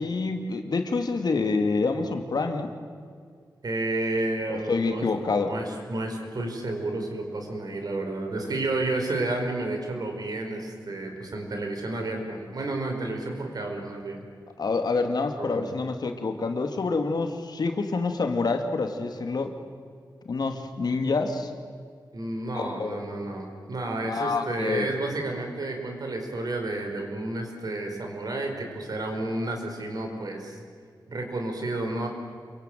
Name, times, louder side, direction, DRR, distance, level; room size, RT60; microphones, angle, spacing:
voice 1, 0.0-2.7 4.5-5.5 14.6-19.5 20.3-21.5 22.5-23.0 24.0-24.9, left 4 dB, 65° left, 6 dB, 2.2 m, -27 dB
voice 2, 3.6-5.1 5.5-14.2 15.4-15.7 22.1-30.6 31.1-32.1, right 2 dB, 60° right, 3 dB, 5.0 m, -31 dB
27.5 x 22.5 x 9.2 m, 2.1 s
wide cardioid pair, 125°, 8 cm